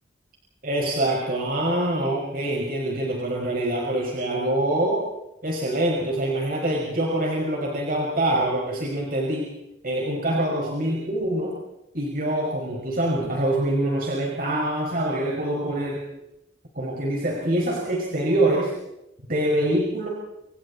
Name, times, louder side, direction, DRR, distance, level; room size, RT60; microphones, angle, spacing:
voice 1, 0.6-5.0 5.4-9.5 9.8-11.6 11.9-16.0 16.7-18.7 19.3-20.1, right 1 dB, 50° right, -2 dB, 5.9 m, -25 dB
28.5 x 28.0 x 4.3 m, 0.87 s
head